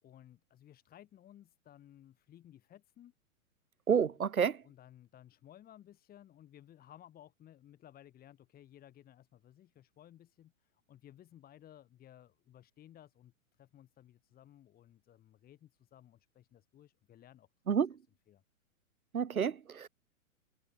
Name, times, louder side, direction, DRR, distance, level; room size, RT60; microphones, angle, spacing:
voice 1, 0.0-3.1 4.0-4.2 4.6-17.8 18.3-18.4, left 11 dB, 20° left, 3.2 m, -58 dB
voice 2, 3.9-4.6 17.7-17.9 19.1-19.9, right 7 dB, 85° right, 0.9 m, -29 dB
figure-of-eight pair, 115°, 41 cm